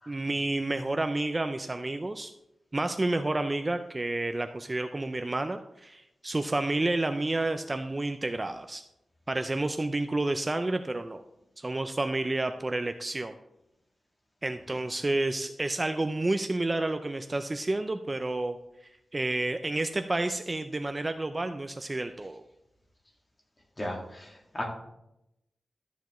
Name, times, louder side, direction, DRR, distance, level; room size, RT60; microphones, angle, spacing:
voice 1, 0.1-2.3 2.7-8.8 9.3-11.2 11.6-13.4 14.4-22.4, right 2 dB, 20° right, 8 dB, 0.4 m, -30 dB
voice 2, 23.8-24.6, left 1 dB, 25° left, 0 dB, 1.9 m, -36 dB
13.0 x 7.0 x 3.0 m, 0.87 s
wide cardioid pair, 140°, 0 cm